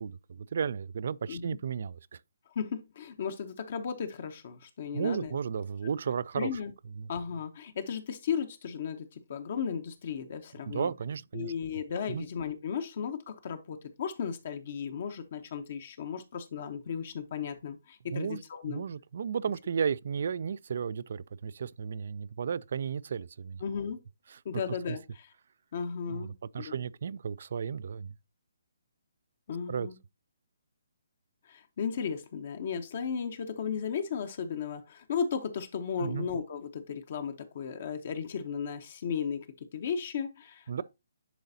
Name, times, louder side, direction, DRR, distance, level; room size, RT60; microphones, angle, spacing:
voice 1, 0.0-2.2 4.9-6.6 7.0-7.1 10.7-11.5 12.1-12.3 18.1-18.4 18.7-23.6 24.3-24.4 24.9-25.0 26.1-26.3 26.5-28.1 29.7-29.9 36.0-36.3 40.7-40.8, right 7 dB, 60° right, 0.3 m, -34 dB
voice 2, 2.5-5.4 6.3-6.7 7.1-10.9 11.3-18.8 23.6-24.0 24.4-25.3 25.7-26.7 29.5-30.0 31.4-39.5 39.7-40.8, left 7 dB, 50° left, 0.9 m, -35 dB
10.0 x 4.0 x 2.7 m
hypercardioid pair, 145°, 0 cm